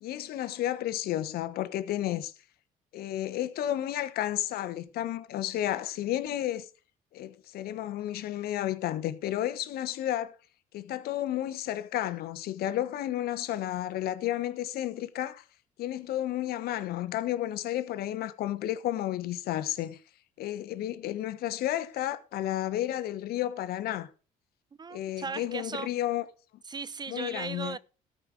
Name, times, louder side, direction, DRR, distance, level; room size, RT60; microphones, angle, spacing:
voice 1, 0.0-2.3 2.9-6.7 7.1-10.4 10.7-15.4 15.8-20.0 20.4-24.1 24.9-26.2 27.1-27.8, left 13 dB, 75° left, 1.1 m, -32 dB
voice 2, 24.8-25.9 26.6-27.8, right 5 dB, 25° right, 0.5 m, -37 dB
13.5 x 5.3 x 6.3 m
cardioid pair, 90°, 16 cm